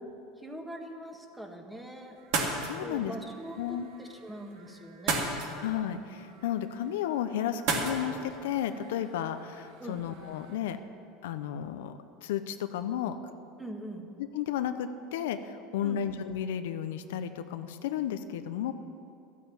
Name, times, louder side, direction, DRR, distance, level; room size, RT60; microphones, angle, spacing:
voice 1, 0.4-2.2 2.8-5.3 9.8-10.0 13.6-14.1 15.8-16.1, right 1 dB, 5° right, 3 dB, 1.8 m, -42 dB
sound 1, 2.2-10.6, right 3 dB, 65° right, 2.6 m, -37 dB
voice 2, 2.6-3.1 3.6-3.9 5.5-10.8 11.2-13.2 14.2-18.7, left 10 dB, 85° left, 9 dB, 0.8 m, -33 dB
14.0 x 8.4 x 8.8 m, 2.7 s
supercardioid pair, 115°, 0 cm